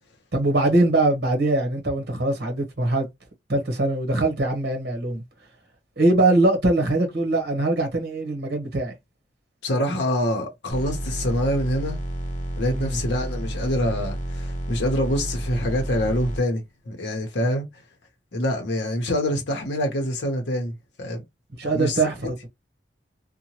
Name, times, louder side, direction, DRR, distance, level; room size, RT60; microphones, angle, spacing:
voice 1, 0.3-3.1 3.5-5.2 6.0-8.9 12.7-13.0 21.6-22.5, right 2 dB, 60° right, 0.9 m, -22 dB
voice 2, 9.6-12.0 12.6-17.7 18.3-20.7 21.0-21.2 21.6-22.0, equal, 75° left, 0.8 m, -25 dB
sound 1, 10.7-16.4, right 1 dB, 45° left, 0.7 m, -30 dB
2.8 x 2.2 x 2.8 m
head